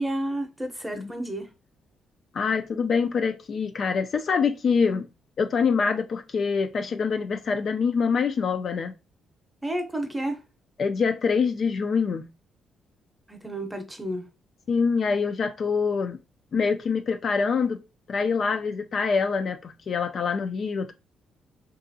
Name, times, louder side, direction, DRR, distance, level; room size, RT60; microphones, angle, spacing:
voice 1, 0.0-1.5 9.6-10.4 13.3-14.2, right 1 dB, 10° right, 0.7 m, -31 dB
voice 2, 2.3-5.1 5.4-8.9 10.8-12.3 14.7-16.2 16.5-17.8 18.1-20.9, left 5 dB, 50° left, 0.3 m, -25 dB
2.7 x 2.4 x 2.6 m
cardioid pair, 90°, 0 cm